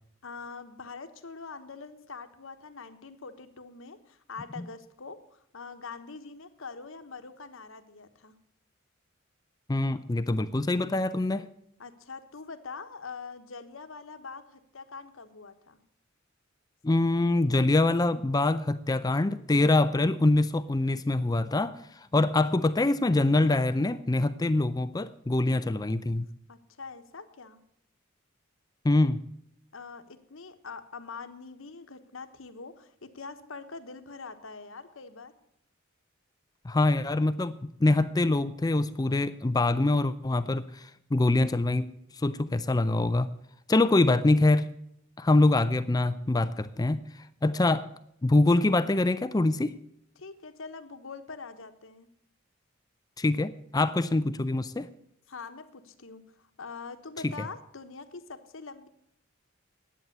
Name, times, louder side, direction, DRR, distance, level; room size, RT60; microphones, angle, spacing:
voice 1, 0.2-8.3 11.8-15.8 26.5-27.6 29.7-35.3 50.2-52.1 55.3-58.9, left 4 dB, 70° left, 9 dB, 1.2 m, -44 dB
voice 2, 9.7-11.5 16.8-26.2 28.8-29.2 36.6-41.9 42.2-43.3 43.7-44.7 45.2-47.0 47.4-47.9 48.2-49.7 53.2-54.9 57.2-57.3, left 2 dB, 20° left, 13 dB, 0.4 m, -24 dB
11.0 x 8.8 x 7.9 m, 0.74 s
head